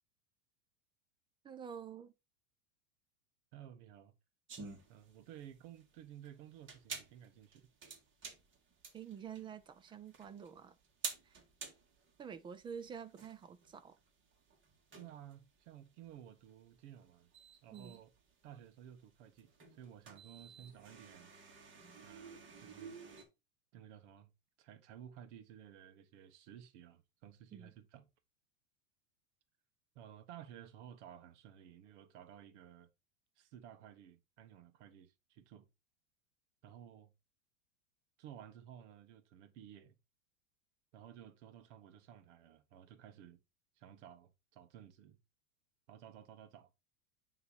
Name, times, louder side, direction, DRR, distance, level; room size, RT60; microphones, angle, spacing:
voice 1, 1.4-2.1 8.9-10.8 11.2-11.4 12.2-14.0 17.7-18.0 27.5-27.7, right 7 dB, 15° right, 0.3 m, -48 dB
voice 2, 3.5-4.1 4.9-7.7 14.9-17.3 17.6-18.1 18.4-21.3 22.0-22.9 23.7-24.3 24.6-28.1 29.9-32.9 33.4-35.6 36.6-37.1 38.2-40.0 40.9-43.4 43.8-45.2 45.9-46.7, right 10 dB, 60° right, 1.3 m, -55 dB
sound 1, 4.5-23.2, right 5 dB, 30° right, 2.1 m, -51 dB
9.5 x 3.2 x 4.3 m
hypercardioid pair, 115°, 40 cm